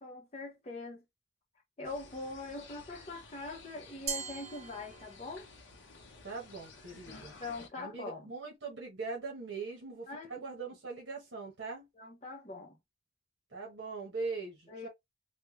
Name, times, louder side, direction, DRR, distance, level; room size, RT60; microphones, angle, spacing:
voice 1, 0.0-1.0 1.8-5.5 7.4-8.2 10.1-10.4 12.0-12.8 14.7-14.9, left 3 dB, 35° left, 0.7 m, -43 dB
sound 1, 1.8-7.7, left 4 dB, 75° left, 0.9 m, -53 dB
Glass, 4.1-5.5, right 6 dB, 35° right, 0.5 m, -41 dB
voice 2, 6.2-7.3 7.8-11.9 13.5-14.9, right 4 dB, 65° right, 1.1 m, -41 dB
3.3 x 2.2 x 3.1 m
head